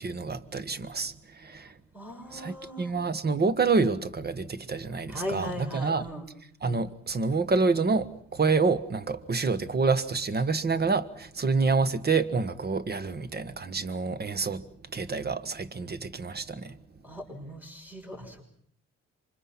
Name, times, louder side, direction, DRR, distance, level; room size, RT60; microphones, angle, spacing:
voice 1, 0.0-1.7 2.3-6.1 6.6-14.6 14.9-16.8, right 4 dB, 35° right, 1.5 m, -28 dB
voice 2, 1.9-2.9 5.1-6.3 17.0-18.4, equal, 5° right, 6.2 m, -38 dB
27.5 x 24.5 x 5.8 m
cardioid pair, 90°, 30 cm